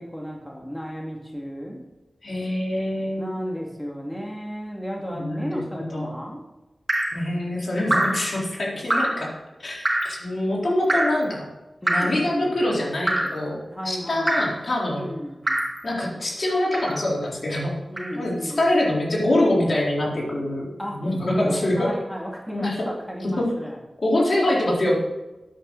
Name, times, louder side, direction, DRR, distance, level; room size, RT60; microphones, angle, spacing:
voice 1, 0.0-1.8 3.2-6.4 11.8-12.6 13.7-14.5 14.9-15.6 17.9-18.6 20.8-23.8, equal, 5° left, -2 dB, 2.3 m, -33 dB
voice 2, 2.2-3.3 5.1-6.1 7.1-9.3 9.6-11.4 11.8-13.6 13.8-15.1 15.8-17.7 18.2-21.9 22.5-22.9 23.2-23.5 24.0-25.0, left 1 dB, 60° left, -4 dB, 3.9 m, -24 dB
Drip, 6.9-7.2 7.9-8.3 8.9-9.2 9.8-10.2 10.9-11.2 11.9-12.2 13.1-13.4 14.3-14.6 15.5-15.8 16.7-17.0 18.0-18.1, right 1 dB, 25° right, 2.3 m, -24 dB
12.5 x 8.9 x 4.1 m, 1.0 s
wide cardioid pair, 60°, 0 cm